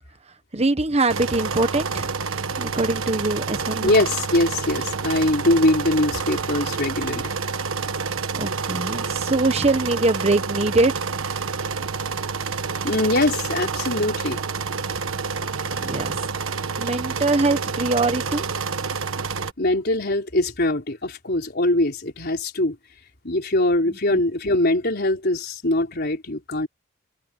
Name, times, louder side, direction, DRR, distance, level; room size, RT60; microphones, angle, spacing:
voice 1, 0.5-2.1 2.6-4.0 8.4-10.9 15.8-16.3 16.8-18.4 24.1-24.2, right 2 dB, 30° right, 1.2 m, -23 dB
sound 1, 1.1-19.5, right 5 dB, 85° right, 1.3 m, -28 dB
voice 2, 3.8-7.3 12.8-14.4 19.6-22.8 23.2-26.7, left 1 dB, 50° left, 4.3 m, -22 dB
head